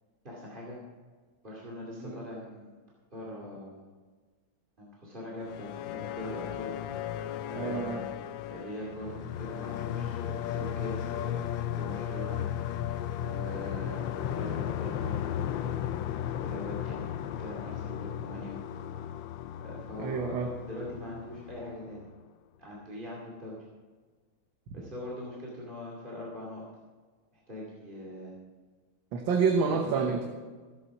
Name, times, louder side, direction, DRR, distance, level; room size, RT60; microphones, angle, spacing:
voice 1, 0.2-0.8 1.4-2.8 3.1-3.8 4.8-6.8 7.5-8.1 8.5-11.4 11.8-12.4 13.1-16.1 16.4-17.1 17.4-18.6 19.6-20.4 20.7-22.0 22.6-23.6 24.7-26.6 27.3-28.4 29.7-30.1, left 1 dB, 25° right, -5 dB, 2.6 m, -42 dB
sound 1, 5.4-22.2, left 10 dB, 80° left, 1.3 m, -35 dB
voice 2, 7.6-8.0 20.0-20.5 29.1-30.3, right 5 dB, 75° right, 3 dB, 1.8 m, -28 dB
15.5 x 8.4 x 6.0 m, 1.4 s
omnidirectional pair, 2.1 m